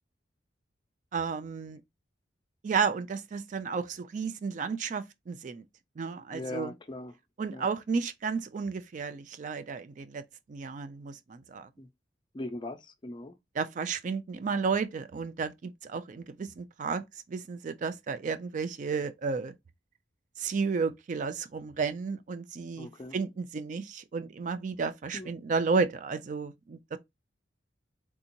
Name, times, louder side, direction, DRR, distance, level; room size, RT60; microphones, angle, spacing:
voice 1, 1.1-1.8 2.6-5.6 6.0-6.7 7.4-10.2 10.5-11.7 13.6-17.0 17.3-19.5 20.4-27.0, right 5 dB, 45° right, 0.3 m, -32 dB
voice 2, 6.3-7.1 7.5-7.7 11.8-11.9 12.3-13.3 22.8-23.2 25.1-25.3, left 2 dB, 25° left, 0.4 m, -40 dB
3.5 x 2.8 x 2.6 m
head